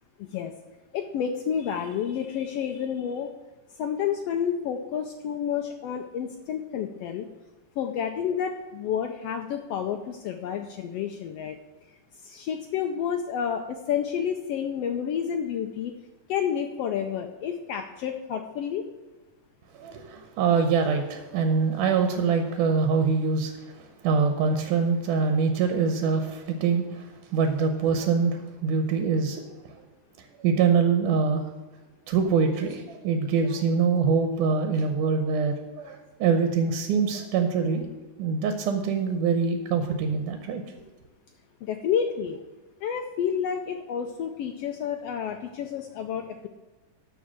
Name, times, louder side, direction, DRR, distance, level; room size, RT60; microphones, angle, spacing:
voice 1, 0.2-0.5 0.9-3.3 3.8-7.3 7.8-11.6 12.2-15.9 16.3-18.9 41.6-42.4 42.8-46.5, left 8 dB, 85° left, 5 dB, 1.3 m, -30 dB
voice 2, 19.7-29.8 30.4-31.5 32.1-37.9 38.2-40.6, right 5 dB, 90° right, 6 dB, 2.4 m, -24 dB
13.5 x 4.7 x 7.4 m, 1.2 s
omnidirectional pair, 3.6 m